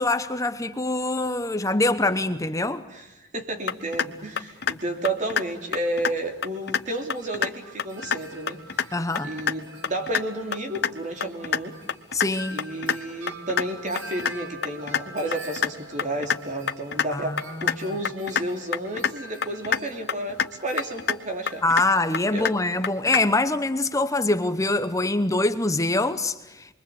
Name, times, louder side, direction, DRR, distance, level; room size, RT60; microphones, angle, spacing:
voice 1, 0.0-2.8 8.9-9.3 12.1-12.6 17.1-17.9 21.6-26.7, left 2 dB, 15° left, 0.9 m, -24 dB
voice 2, 3.3-9.0 9.2-11.8 12.5-21.6 22.3-22.5, right 1 dB, 40° right, 3.3 m, -31 dB
sound 1, 3.7-4.1 4.4-4.8 5.0-5.4 5.7-6.1 6.4-6.8 7.1-7.5 7.8-8.2 8.5-8.8 9.1-9.5 9.8-10.2 10.5-10.9 11.2-11.6 11.9-12.3 12.6-13.0 13.3-13.6 13.9-14.3 14.6-15.0 15.3-15.7 16.0-16.4 16.7-17.1 17.4-17.7 18.0-18.4 18.7-19.1 19.4-19.8 20.1-20.5 20.8-21.1 21.5-21.9 22.1-22.5 22.8-23.2, left 7 dB, 60° left, 1.2 m, -25 dB
Wind chime, 6.6-23.5, right 2 dB, 80° right, 4.2 m, -45 dB
28.0 x 23.0 x 8.7 m
head